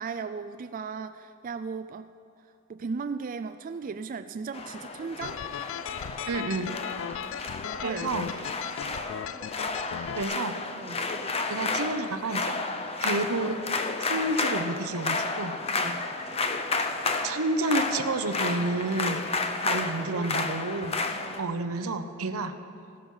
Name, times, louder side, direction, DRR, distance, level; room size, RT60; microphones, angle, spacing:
voice 1, 0.0-2.1 2.7-5.4 7.8-8.2 10.8-11.1 15.7-16.0 19.7-20.5 20.9-22.4, right 5 dB, 40° right, 10 dB, 0.3 m, -37 dB
sound 1, 4.5-21.4, left 3 dB, 30° left, 0.6 m, -32 dB
sound 2, 5.2-10.2, left 9 dB, 60° left, 0.3 m, -37 dB
voice 2, 6.3-6.8 7.8-8.3 10.2-10.6 11.5-12.6 13.0-13.6 14.0-15.5 17.2-19.2 19.6-21.0 21.4-22.5, right 2 dB, 85° right, 9 dB, 0.8 m, -30 dB
14.5 x 12.0 x 5.5 m, 2.8 s
head